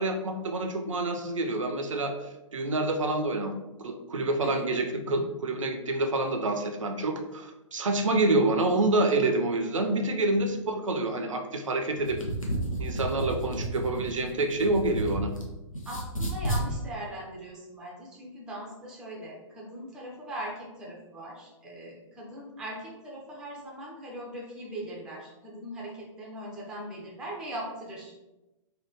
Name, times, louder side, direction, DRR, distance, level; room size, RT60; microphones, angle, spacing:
voice 1, 0.0-2.2 2.5-3.5 3.8-12.2 12.8-15.3, right 2 dB, 70° right, 5 dB, 0.4 m, -27 dB
voice 2, 4.4-4.8 15.8-28.1, right 1 dB, 5° right, -3 dB, 0.3 m, -40 dB
sound 1, 11.9-15.4 15.7-16.7, right 1 dB, 85° left, 0.7 m, -32 dB
3.2 x 2.1 x 3.0 m, 1.0 s
figure-of-eight pair, 120°, 17 cm